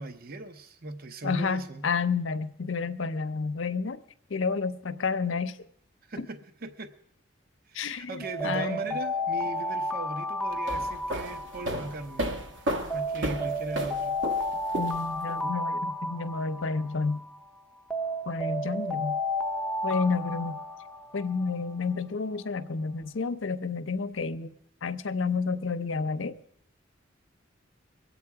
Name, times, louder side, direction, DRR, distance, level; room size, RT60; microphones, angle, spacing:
voice 1, 0.0-1.9 6.1-6.9 7.7-14.1, right 2 dB, 50° right, 0.8 m, -39 dB
voice 2, 1.2-4.0 4.3-5.6 6.2-6.3 7.7-8.8 14.7-17.2 18.3-19.2 19.8-20.6 21.1-24.5 24.8-26.3, left 4 dB, 80° left, 0.7 m, -30 dB
Alarm, 8.2-12.4 12.9-17.4 17.9-21.7, left 1 dB, 5° left, 0.6 m, -32 dB
sound 1, 10.5-15.4, right 1 dB, 65° right, 1.2 m, -33 dB
23.0 x 8.4 x 4.8 m
head